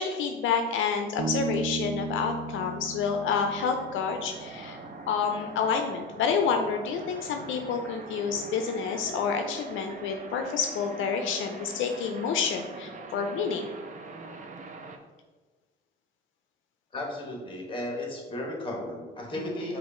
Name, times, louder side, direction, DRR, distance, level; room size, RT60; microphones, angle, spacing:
voice 1, 0.0-13.7 19.5-19.6, left 6 dB, 80° left, 5 dB, 0.4 m, -29 dB
Bass guitar, 1.2-4.7, right 3 dB, 85° right, 0.5 m, -35 dB
sound 1, 2.2-15.0, right 3 dB, 40° right, 0.6 m, -43 dB
voice 2, 16.9-19.8, left 1 dB, 25° left, 0 dB, 1.3 m, -34 dB
4.6 x 2.5 x 4.3 m, 1.3 s
cardioid pair, 90°, 20 cm